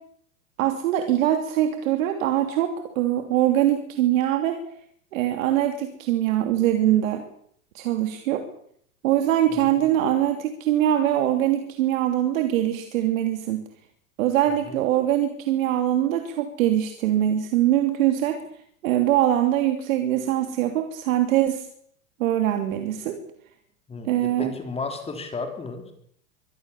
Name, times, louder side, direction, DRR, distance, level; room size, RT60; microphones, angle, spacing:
voice 1, 0.6-4.6 5.1-7.2 7.7-8.5 9.0-13.6 14.2-18.4 18.8-21.6 22.2-23.2 24.1-24.5, right 12 dB, 70° right, 6 dB, 3.0 m, -22 dB
voice 2, 9.5-9.8 14.6-14.8 23.9-25.9, left 4 dB, 15° left, 5 dB, 3.5 m, -34 dB
24.0 x 18.5 x 7.1 m, 0.68 s
supercardioid pair, 135°, 42 cm